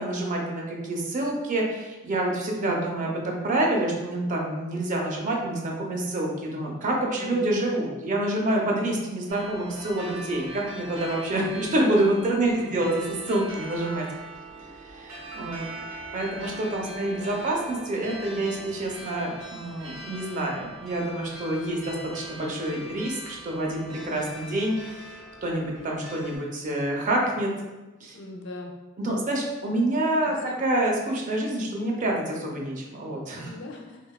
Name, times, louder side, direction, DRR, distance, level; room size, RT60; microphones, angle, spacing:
voice 1, 0.0-14.1 14.8-15.6 16.1-27.5 28.0-28.2 29.0-33.5, right 1 dB, 35° right, -1 dB, 0.4 m, -27 dB
voice 2, 2.5-3.1 7.1-7.5 12.4-13.0 16.8-17.4 28.1-28.7 30.2-30.6 33.4-34.0, left 1 dB, 60° left, 1 dB, 0.4 m, -40 dB
sound 1, 9.3-26.4, right 1 dB, 75° right, 0.7 m, -42 dB
2.8 x 2.2 x 2.2 m, 1.1 s
head